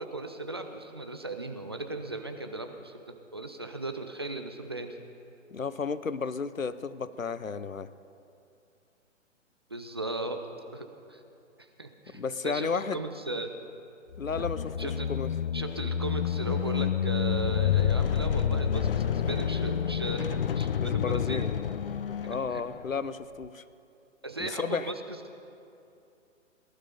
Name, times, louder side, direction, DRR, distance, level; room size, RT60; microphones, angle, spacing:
voice 1, 0.0-2.9 3.3-5.0 9.7-10.4 10.7-11.2 11.6-13.5 14.4-14.5 14.8-15.1 15.5-21.5 22.5-22.6 24.2-24.9, right 2 dB, 20° right, 5 dB, 0.4 m, -37 dB
voice 2, 5.5-7.9 12.1-13.0 14.2-15.3 20.8-21.5 22.3-23.6 24.4-24.9, left 5 dB, 90° left, 14 dB, 0.7 m, -33 dB
sound 1, 14.1-22.9, left 8 dB, 50° left, 0.4 m, -29 dB
18.5 x 12.0 x 5.2 m, 2.7 s
figure-of-eight pair, 125°, 39 cm